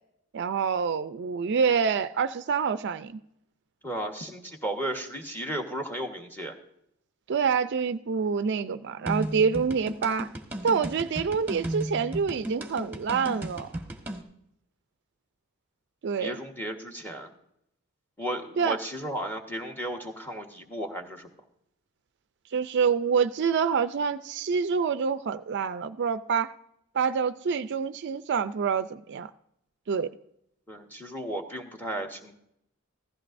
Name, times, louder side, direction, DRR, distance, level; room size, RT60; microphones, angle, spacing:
voice 1, 0.3-3.2 7.3-10.3 10.6-13.7 16.0-16.4 18.6-18.8 22.5-26.5 26.9-29.3 29.9-30.1, right 6 dB, 50° right, 0.4 m, -27 dB
voice 2, 3.8-6.6 16.2-17.3 18.2-21.3 30.7-32.4, right 1 dB, 10° left, 1.2 m, -34 dB
sound 1, 9.1-14.2, right 1 dB, 10° right, 1.3 m, -35 dB
15.5 x 14.0 x 2.6 m
head